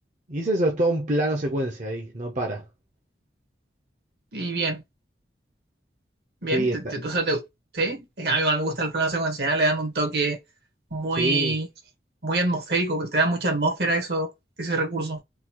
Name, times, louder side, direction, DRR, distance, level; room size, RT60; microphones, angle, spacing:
voice 1, 0.3-2.6 6.5-6.9 11.2-11.6, right 1 dB, 45° right, 0.7 m, -25 dB
voice 2, 4.3-4.8 6.4-7.4 7.7-10.4 10.9-11.7 12.2-14.3 14.6-15.2, right 2 dB, 70° right, 1.3 m, -25 dB
3.8 x 2.3 x 2.9 m
head